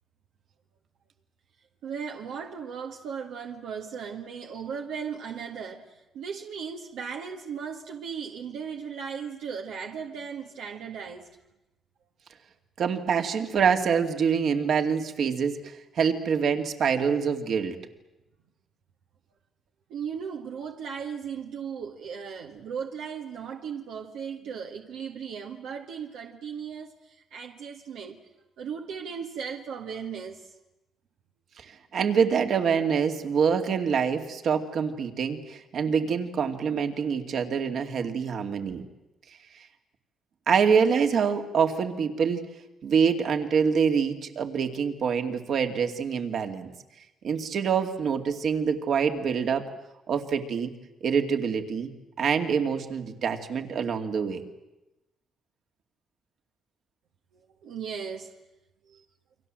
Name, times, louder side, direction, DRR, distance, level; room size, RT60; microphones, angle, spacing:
voice 1, 1.8-11.3 19.9-28.2 28.6-30.5 38.1-38.3 57.3-58.3 58.8-59.0, right 6 dB, 85° right, 1.8 m, -37 dB
voice 2, 12.8-17.8 31.6-31.7 31.9-38.8 40.5-42.5 42.8-46.7 47.2-49.6 50.1-50.7 51.0-51.9 52.2-54.4, right 6 dB, 65° right, 2.5 m, -25 dB
29.5 x 24.0 x 7.7 m
cardioid pair, 90°, 0 cm